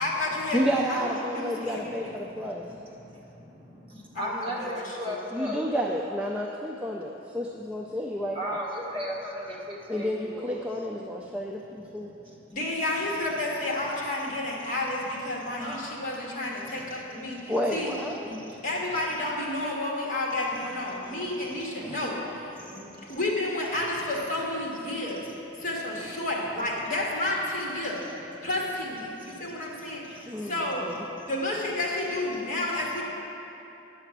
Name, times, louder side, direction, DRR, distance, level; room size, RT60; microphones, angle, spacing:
voice 1, 0.0-2.2 4.1-5.2 12.5-17.9 18.2-25.2 25.6-28.0 28.4-30.9 31.2-33.0, left 1 dB, 45° left, -3 dB, 1.7 m, -31 dB
voice 2, 0.5-2.6 5.3-8.6 9.9-12.1 17.5-18.3 21.8-22.0 30.3-31.0, equal, 5° right, -2 dB, 0.4 m, -31 dB
voice 3, 2.2-5.7 8.3-10.7 12.2-12.3 15.6-15.9 16.8-17.4 18.3-18.6 21.0-21.5 22.6-23.2 25.5-25.6 28.1-28.5 29.1-30.5, equal, 30° right, -4 dB, 1.5 m, -38 dB
9.8 x 6.8 x 6.0 m, 3.0 s
head